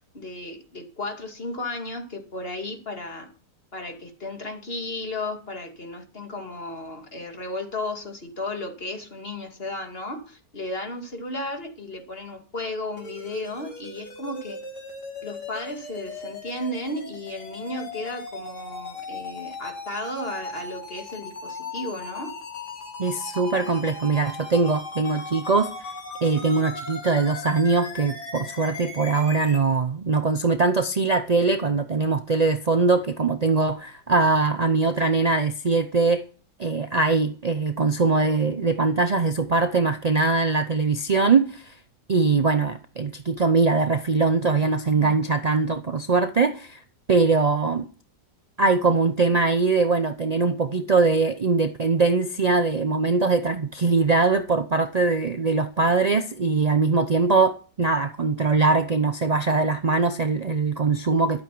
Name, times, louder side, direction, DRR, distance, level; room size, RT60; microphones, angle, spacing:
voice 1, 0.1-3.3 3.7-14.6 15.2-22.3, left 2 dB, 35° left, 2.6 m, -34 dB
sound 1, 13.0-29.6, left 3 dB, 80° left, 3.6 m, -38 dB
voice 2, 23.0-25.9 26.2-36.3 36.6-41.8 42.1-46.8 47.1-47.9 48.6-61.4, right 4 dB, 65° right, 0.4 m, -22 dB
12.5 x 8.6 x 6.0 m
omnidirectional pair, 1.8 m